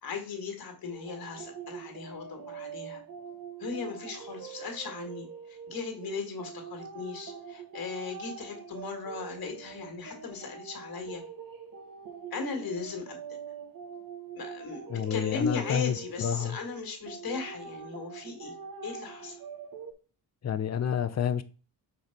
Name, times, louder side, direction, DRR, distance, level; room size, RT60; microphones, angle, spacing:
voice 1, 0.0-3.0 3.6-11.2 12.3-13.4 14.4-18.6 18.8-19.4, left 5 dB, 60° left, 1.9 m, -37 dB
sound 1, 0.9-19.9, right 6 dB, 55° right, 1.6 m, -44 dB
voice 2, 14.9-16.6 20.4-21.4, left 8 dB, 40° left, 0.7 m, -29 dB
4.9 x 4.1 x 5.8 m
cardioid pair, 85°, 41 cm